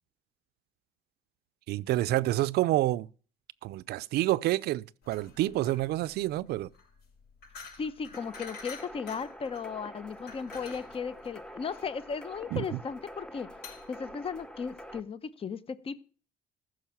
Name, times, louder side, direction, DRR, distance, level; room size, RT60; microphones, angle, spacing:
voice 1, 1.7-3.1 3.6-6.7 12.5-12.6, right 16 dB, 70° right, 0.5 m, -28 dB
sound 1, 5.0-15.0, left 4 dB, 75° left, 6.0 m, -49 dB
voice 2, 7.8-13.5 13.9-16.0, left 6 dB, 35° left, 0.8 m, -36 dB
sound 2, 8.1-15.0, equal, 5° left, 0.9 m, -47 dB
14.5 x 6.3 x 7.2 m
cardioid pair, 110°, 17 cm